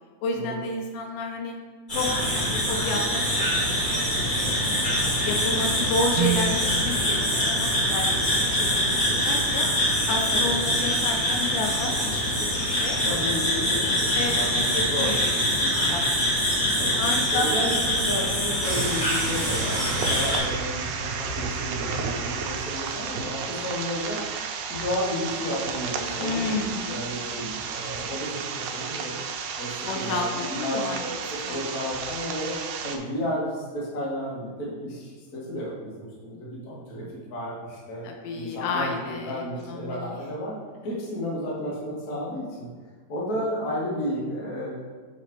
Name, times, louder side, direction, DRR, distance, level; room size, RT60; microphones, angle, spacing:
voice 1, 0.2-1.6 1.9-3.8 4.4-9.6 10.1-13.0 14.1-15.3 15.6-17.5 26.2-27.1 29.8-31.2 31.4-31.8 38.0-40.2, left 3 dB, 80° left, 3 dB, 2.1 m, -31 dB
sound 1, 1.9-20.4, equal, 20° left, 1.7 m, -24 dB
sound 2, 6.1-10.2, right 6 dB, 65° right, 1.6 m, -33 dB
voice 2, 7.1-7.5 10.3-10.5 13.0-14.5 14.8-15.1 15.6-15.7 16.7-17.0 17.3-24.2 24.7-26.4 26.9-29.1 29.6-31.1 31.5-32.5 32.8-37.0 37.3-38.1 38.3-40.5 40.8-42.7 43.1-44.7, equal, 45° left, -5 dB, 1.3 m, -32 dB
sound 3, 18.6-33.0, right 5 dB, 90° right, 2.2 m, -32 dB
7.2 x 4.0 x 4.5 m, 1.5 s
omnidirectional pair, 3.8 m